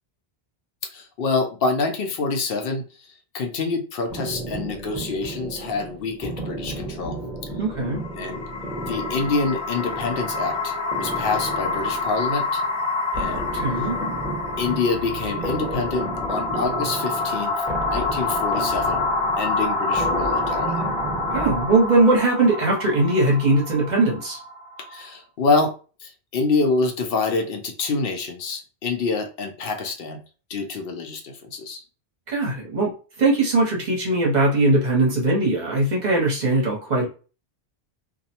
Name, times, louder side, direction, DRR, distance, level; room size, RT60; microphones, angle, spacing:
voice 1, 0.9-2.8 3.3-7.2 8.2-8.4 8.9-12.6 13.2-13.6 14.6-17.5 17.9-19.0 19.4-20.8 24.9-25.7 26.0-30.2 30.5-31.8, left 3 dB, 70° left, 4 dB, 0.7 m, -26 dB
sound 1, 4.1-22.2, right 1 dB, 5° right, 0.7 m, -33 dB
voice 2, 7.6-8.0 13.5-14.0 21.3-24.4 32.3-32.9 33.2-37.1, right 2 dB, 50° right, -1 dB, 0.8 m, -20 dB
sound 2, 7.9-25.0, left 3 dB, 45° left, 0.3 m, -27 dB
2.5 x 2.0 x 2.7 m, 0.35 s
omnidirectional pair, 1.0 m